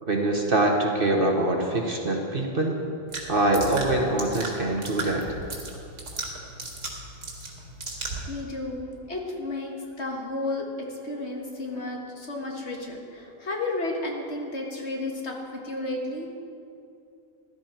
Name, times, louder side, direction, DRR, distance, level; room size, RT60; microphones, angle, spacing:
voice 1, 0.0-2.8 3.3-5.2, right 2 dB, 40° right, 1 dB, 1.3 m, -24 dB
sound 1, 3.1-8.3, right 3 dB, 90° right, 2.5 m, -36 dB
voice 2, 8.3-16.3, left 2 dB, 50° left, 0 dB, 1.8 m, -32 dB
15.5 x 12.0 x 4.5 m, 2.5 s
omnidirectional pair, 1.5 m